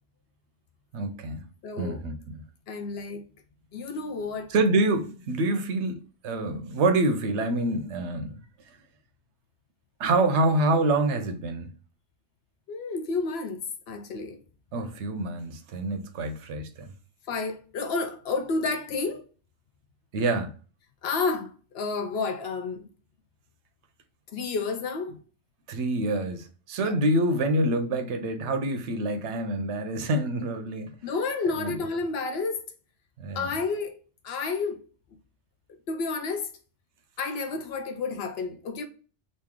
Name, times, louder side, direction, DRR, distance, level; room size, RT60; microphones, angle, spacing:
voice 1, 0.9-1.5 1.8-2.4 4.5-8.4 10.0-11.7 14.7-16.9 20.1-20.5 25.7-30.9 31.6-31.8 33.2-33.4, right 2 dB, 75° right, 0.9 m, -26 dB
voice 2, 1.6-2.0 2.7-3.3 3.7-4.5 12.7-14.4 17.3-19.2 21.0-22.9 24.3-25.1 26.8-27.0 31.0-32.7 33.3-34.0 34.2-34.8 35.9-36.5 37.2-38.9, left 4 dB, 65° left, 0.7 m, -30 dB
3.1 x 2.6 x 3.5 m
omnidirectional pair, 1.2 m